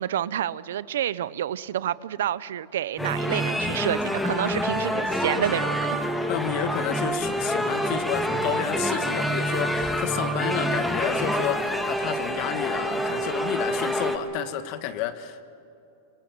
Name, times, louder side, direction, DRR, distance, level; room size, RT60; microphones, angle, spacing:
voice 1, 0.0-6.0, right 11 dB, 85° right, 18 dB, 0.7 m, -28 dB
sound 1, 3.0-14.2, equal, 5° left, 1.6 m, -27 dB
voice 2, 6.3-15.4, left 10 dB, 45° left, 10 dB, 1.6 m, -31 dB
26.0 x 22.5 x 7.4 m, 2.7 s
supercardioid pair, 155°, 0 cm